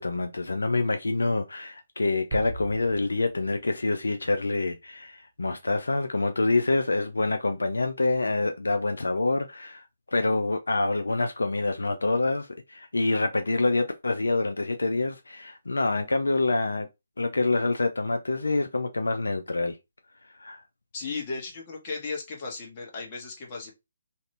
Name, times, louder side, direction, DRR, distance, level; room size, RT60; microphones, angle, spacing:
voice 1, 0.0-9.8 10.1-16.9 17.2-19.8 20.4-20.6, left 2 dB, 85° left, 0.4 m, -26 dB
sound 1, 2.3-4.2, right 1 dB, 30° right, 1.2 m, -38 dB
voice 2, 20.9-23.7, left 4 dB, 35° left, 1.2 m, -35 dB
2.8 x 2.4 x 3.2 m
figure-of-eight pair, 145°, 0 cm